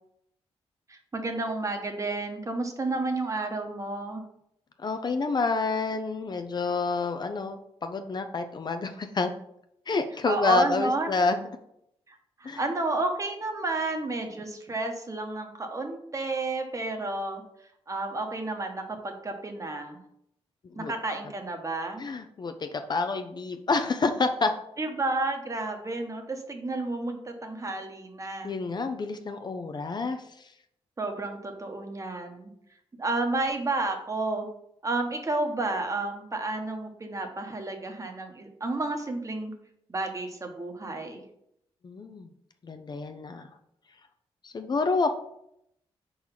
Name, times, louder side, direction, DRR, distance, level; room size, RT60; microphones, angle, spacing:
voice 1, 0.9-4.2 10.3-11.1 12.1-17.4 17.9-20.0 20.7-22.0 24.8-28.5 31.0-32.5 33.0-34.5 34.8-39.5 39.9-41.2, right 2 dB, 30° right, 4 dB, 1.1 m, -31 dB
voice 2, 4.8-9.3 9.9-11.4 12.4-12.6 20.7-20.9 22.0-24.5 28.4-30.5 41.8-42.3 42.6-43.5 44.4-45.1, left 3 dB, 40° left, 7 dB, 0.5 m, -28 dB
4.7 x 3.9 x 5.7 m, 0.76 s
cardioid pair, 90°, 11 cm